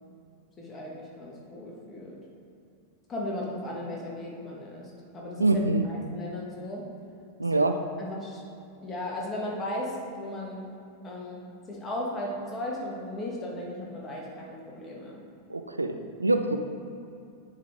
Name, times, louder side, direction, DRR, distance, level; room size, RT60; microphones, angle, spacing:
voice 1, 0.6-2.2 3.1-5.5 5.8-6.8 8.0-8.4 8.8-10.7 11.0-15.2, left 1 dB, 20° left, -3 dB, 1.6 m, -36 dB
voice 2, 5.4-5.8 7.4-7.8 15.5-16.6, right 2 dB, 80° right, 6 dB, 0.4 m, -25 dB
9.3 x 3.9 x 4.4 m, 2.6 s
figure-of-eight pair, 90°, 0 cm